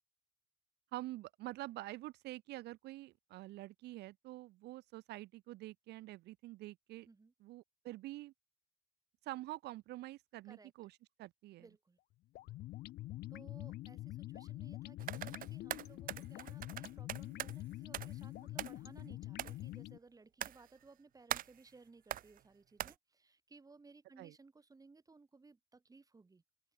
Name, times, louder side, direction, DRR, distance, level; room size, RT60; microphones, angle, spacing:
voice 1, 0.9-7.1 7.4-8.3 9.2-11.6 24.2-24.3, right 17 dB, 80° right, 1.3 m, -47 dB
voice 2, 11.6-12.0 13.3-26.4, right 3 dB, 20° right, 7.7 m, -61 dB
sound 1, 12.3-20.0, left 16 dB, 70° left, 0.7 m, -46 dB
sound 2, 15.0-17.6 17.9-18.2 18.6-19.0 19.4-19.6 20.4-20.8 21.3-21.6 22.1-22.4 22.8-22.9, right 12 dB, 55° right, 0.8 m, -42 dB
open air
cardioid pair, 110°, 17 cm